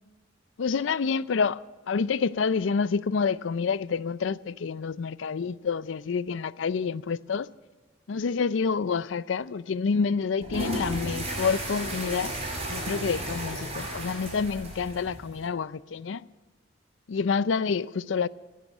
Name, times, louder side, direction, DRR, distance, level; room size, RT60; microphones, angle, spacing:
voice 1, 0.6-1.6 1.9-7.5 8.1-12.3 12.7-16.2 17.1-18.3, left 5 dB, 80° left, 0.5 m, -28 dB
sound 1, 10.4-15.4, right 1 dB, 35° right, 5.4 m, -34 dB
15.5 x 10.0 x 7.1 m
head